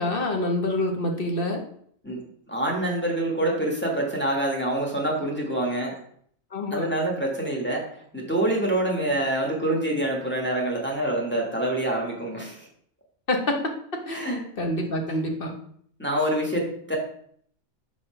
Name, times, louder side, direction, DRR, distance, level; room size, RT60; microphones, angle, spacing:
voice 1, 0.0-1.6 6.5-6.9 13.3-13.6 14.1-15.6, left 1 dB, 45° left, 3 dB, 1.1 m, -27 dB
voice 2, 2.5-5.9 6.7-7.8 8.1-12.6 14.1-14.5 16.0-17.0, right 1 dB, 10° left, -1 dB, 1.5 m, -26 dB
4.9 x 4.2 x 5.5 m, 0.63 s
omnidirectional pair, 1.4 m